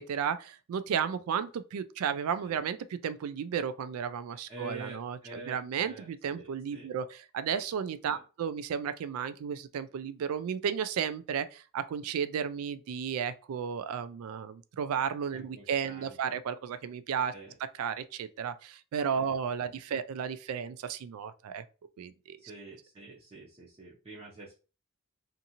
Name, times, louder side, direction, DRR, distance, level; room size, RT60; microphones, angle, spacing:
voice 1, 0.0-17.3 17.6-21.6 22.0-22.4, right 7 dB, 85° right, 0.3 m, -33 dB
voice 2, 4.5-6.9 8.1-8.2 15.3-16.4 17.3-17.6 19.1-19.3 19.6-19.7 22.4-24.6, right 2 dB, 25° right, 0.5 m, -47 dB
2.6 x 2.5 x 2.8 m
head